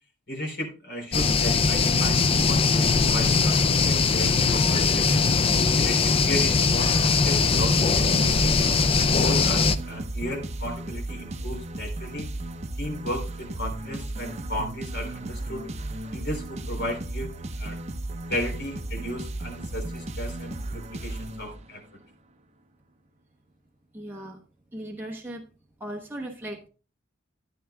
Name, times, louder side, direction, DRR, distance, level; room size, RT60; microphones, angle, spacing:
voice 1, 0.3-5.3 5.7-8.6 9.0-12.3 12.8-15.7 16.1-17.3 17.6-17.8 18.3-21.8, left 1 dB, 55° left, 1 dB, 3.7 m, -35 dB
sound 1, 1.1-9.8, left 4 dB, 30° left, 0.4 m, -21 dB
sound 2, 7.4-21.9, right 2 dB, 35° right, 0.6 m, -35 dB
voice 2, 23.9-24.4 24.7-25.5 25.8-26.7, right 1 dB, 10° right, -2 dB, 1.0 m, -37 dB
13.0 x 9.2 x 2.3 m, 0.34 s
head